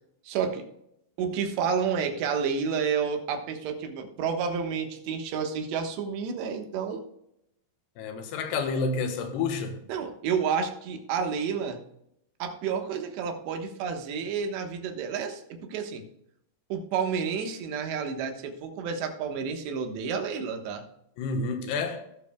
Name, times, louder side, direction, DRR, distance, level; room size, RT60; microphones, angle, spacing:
voice 1, 0.3-0.7 1.2-7.0 9.9-11.8 12.4-16.0 16.7-20.8, right 6 dB, 80° right, 3.5 m, -30 dB
voice 2, 8.0-9.8 21.2-22.0, left 4 dB, 80° left, 3.2 m, -29 dB
19.0 x 6.9 x 2.2 m
omnidirectional pair, 4.9 m